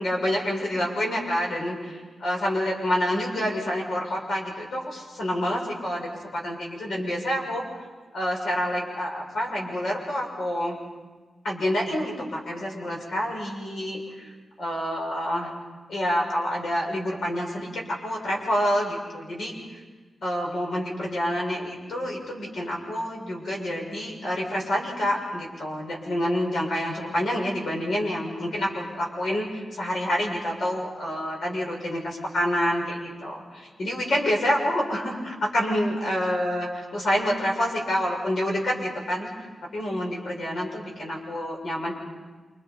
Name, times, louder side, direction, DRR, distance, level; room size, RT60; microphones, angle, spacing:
voice 1, 0.0-7.6 8.1-10.8 11.4-14.3 14.6-15.5 15.9-19.8 20.2-39.4 39.7-41.9, equal, 70° left, -1 dB, 6.5 m, -28 dB
28.0 x 27.5 x 5.4 m, 1.3 s
wide cardioid pair, 160°, 0 cm